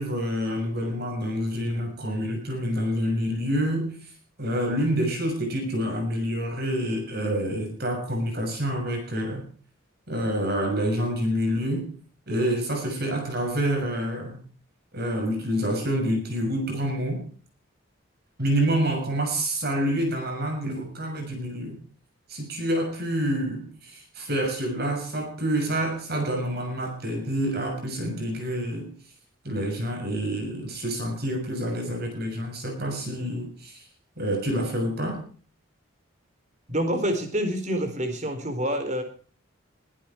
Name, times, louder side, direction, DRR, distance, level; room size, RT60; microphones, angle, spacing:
voice 1, 0.0-3.9 4.4-9.5 10.1-11.9 12.3-14.4 14.9-17.2 18.4-21.8 22.3-28.9 29.4-33.8 34.2-35.2, equal, 50° right, 4 dB, 6.5 m, -27 dB
voice 2, 36.7-39.0, equal, 35° right, 7 dB, 4.0 m, -27 dB
22.0 x 11.5 x 4.5 m, 0.43 s
head